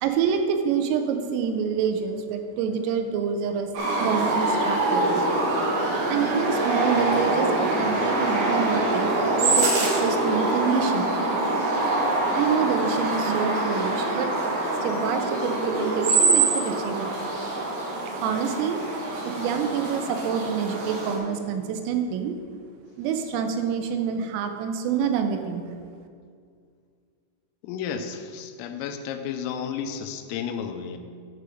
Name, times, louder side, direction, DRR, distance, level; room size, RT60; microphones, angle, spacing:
voice 1, 0.0-3.7 4.0-5.3 6.1-9.1 9.4-11.1 12.3-14.3 14.8-17.3 18.2-18.8 19.2-22.4 23.0-25.7, right 7 dB, 90° right, 6 dB, 3.4 m, -27 dB
sound 1, 3.7-21.2, right 2 dB, 65° right, 3.0 m, -24 dB
voice 2, 27.6-31.0, left 7 dB, 90° left, 8 dB, 3.2 m, -32 dB
9.6 x 5.1 x 6.3 m, 2.2 s
omnidirectional pair, 5.8 m